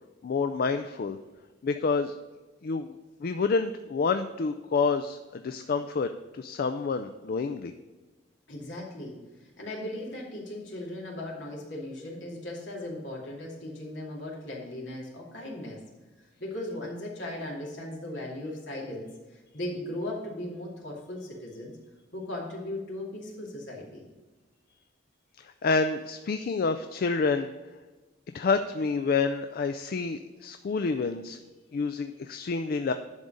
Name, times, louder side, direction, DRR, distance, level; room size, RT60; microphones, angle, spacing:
voice 1, 0.2-1.2 1.6-2.1 2.6-2.9 3.2-6.1 6.3-7.7 25.4-27.5 28.3-31.4 31.7-32.9, left 4 dB, 50° left, 8 dB, 0.4 m, -28 dB
voice 2, 8.5-9.1 9.4-15.8 16.2-21.8 22.1-24.0, left 1 dB, 70° left, -3 dB, 2.5 m, -37 dB
10.5 x 4.0 x 6.3 m, 1.2 s
head